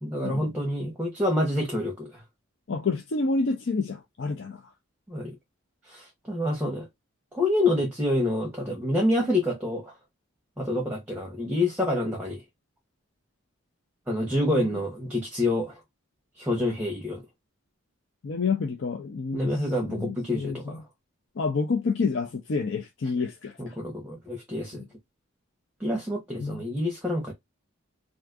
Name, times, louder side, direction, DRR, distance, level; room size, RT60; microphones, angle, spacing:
voice 1, 0.0-2.2 5.1-5.4 5.9-6.9 7.3-9.9 10.6-12.4 14.1-15.8 16.4-17.2 19.3-20.8 23.6-24.8 25.8-27.3, left 1 dB, 5° right, 0.7 m, -27 dB
voice 2, 2.7-4.6 14.5-14.7 18.2-19.5 19.8-20.8 21.4-23.7 26.4-26.7, left 4 dB, 60° left, 0.5 m, -29 dB
2.6 x 2.4 x 3.5 m
head